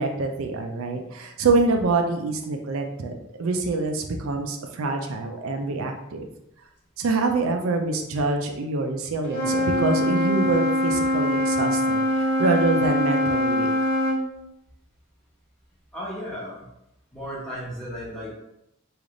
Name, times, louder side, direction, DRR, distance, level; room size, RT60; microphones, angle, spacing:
voice 1, 0.0-6.3 7.0-13.7, right 3 dB, 75° right, 4 dB, 0.4 m, -25 dB
Wind instrument woodwind instrument, 9.2-14.2, equal, 30° left, 1.1 m, -23 dB
voice 2, 15.9-16.6 17.1-18.3, equal, 5° left, -7 dB, 1.1 m, -34 dB
3.3 x 2.4 x 3.7 m, 0.83 s
head